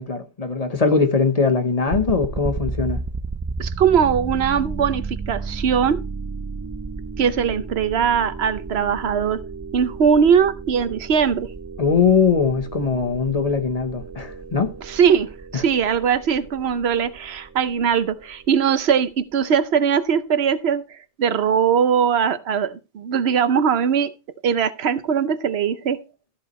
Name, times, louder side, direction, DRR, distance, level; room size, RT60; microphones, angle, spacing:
voice 1, 0.0-3.0 11.8-14.7 15.5-15.6, left 5 dB, 40° left, 1.0 m, -21 dB
sound 1, 1.9-18.8, right 4 dB, 30° right, 0.3 m, -33 dB
voice 2, 3.6-6.0 7.2-9.4 9.7-11.5 14.8-24.1 24.4-26.0, right 7 dB, 80° right, 1.0 m, -20 dB
13.5 x 8.1 x 3.1 m
omnidirectional pair, 1.1 m